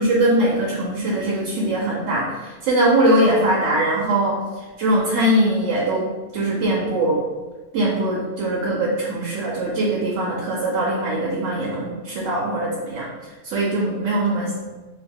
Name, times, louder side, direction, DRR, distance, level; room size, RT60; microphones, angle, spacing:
voice 1, 0.0-4.4 4.8-6.1 6.3-7.2 7.7-13.1 13.4-14.5, right 1 dB, 85° right, -4 dB, 1.0 m, -21 dB
2.8 x 2.4 x 3.4 m, 1.2 s
omnidirectional pair, 1.3 m